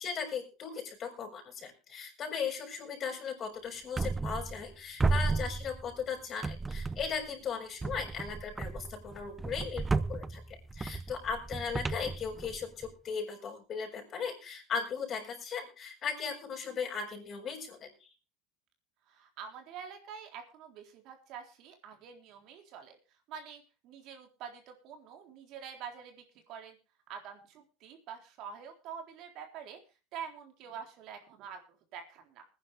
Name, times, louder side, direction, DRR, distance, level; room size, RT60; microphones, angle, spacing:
voice 1, 0.0-10.4 10.7-17.9, left 6 dB, 40° left, 4 dB, 6.6 m, -37 dB
sound 1, 4.0-4.7 5.0-6.1 6.4-7.3 7.8-12.9, right 3 dB, 15° right, 0.8 m, -34 dB
voice 2, 19.1-23.0 23.3-26.8 27.1-29.8 30.1-32.5, right 7 dB, 60° right, 4 dB, 3.8 m, -46 dB
20.5 x 10.5 x 3.5 m, 0.31 s
hypercardioid pair, 95°, 0 cm